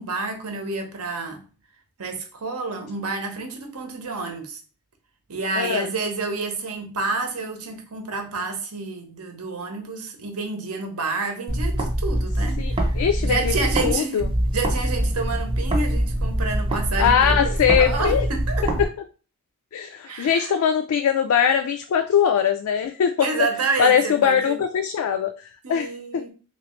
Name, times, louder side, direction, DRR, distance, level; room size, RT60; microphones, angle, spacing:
voice 1, 0.0-1.4 2.0-4.6 5.3-14.3 14.5-18.6 20.0-20.6 23.2-24.6 25.6-26.3, right 3 dB, 90° right, 0.8 m, -29 dB
voice 2, 5.6-5.9 12.6-13.5 13.8-14.3 17.0-18.3 18.8-18.9 19.7-23.3 23.8-25.3 25.7-26.3, left 7 dB, 75° left, 0.3 m, -21 dB
sound 1, 11.5-13.9 14.2-18.8, right 1 dB, 25° right, 0.6 m, -24 dB
3.2 x 3.0 x 3.0 m
head